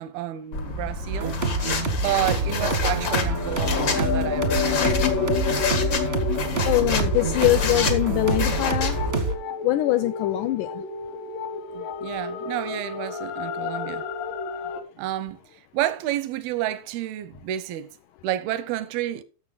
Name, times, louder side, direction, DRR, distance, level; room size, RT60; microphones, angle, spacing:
voice 1, 0.0-1.4 2.0-5.0 11.7-14.0 15.0-15.4 15.7-17.9 18.2-19.2, right 13 dB, 85° right, 2.7 m, -30 dB
sound 1, 0.5-9.1, left 3 dB, 50° left, 1.2 m, -28 dB
sound 2, 1.1-9.3, right 3 dB, 50° right, 0.7 m, -27 dB
sound 3, 3.0-14.8, left 6 dB, 70° left, 2.5 m, -30 dB
voice 2, 6.7-9.0 9.6-10.8, left 17 dB, 85° left, 1.7 m, -23 dB
13.0 x 7.0 x 4.0 m
omnidirectional pair, 4.3 m